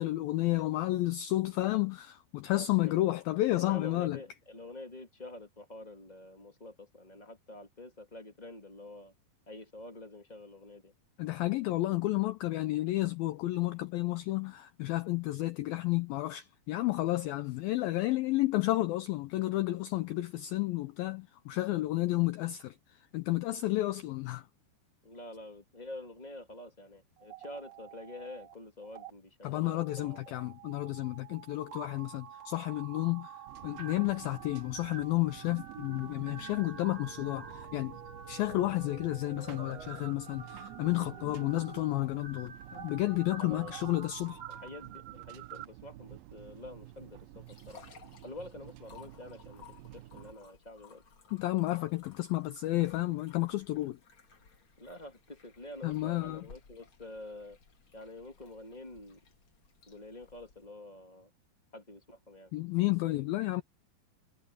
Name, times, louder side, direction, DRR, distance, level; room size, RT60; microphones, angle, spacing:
voice 1, 0.0-4.2 11.2-22.8 23.1-24.4 29.4-33.3 33.6-38.0 38.3-44.4 51.3-54.0 55.8-56.4 62.5-63.6, left 17 dB, 85° left, 2.1 m, -31 dB
voice 2, 3.6-9.1 9.5-10.9 25.0-30.4 43.4-43.8 44.5-47.8 48.2-49.6 49.9-51.0 54.8-57.6 57.9-59.2 59.9-61.3 61.7-62.5, left 2 dB, 15° left, 1.9 m, -47 dB
sound 1, 27.2-28.5 28.8-29.1 29.6-45.6, right 7 dB, 45° right, 2.6 m, -47 dB
sound 2, 33.5-50.3, right 15 dB, 75° right, 2.2 m, -52 dB
sound 3, 46.4-60.7, left 6 dB, 40° left, 2.3 m, -59 dB
omnidirectional pair, 5.0 m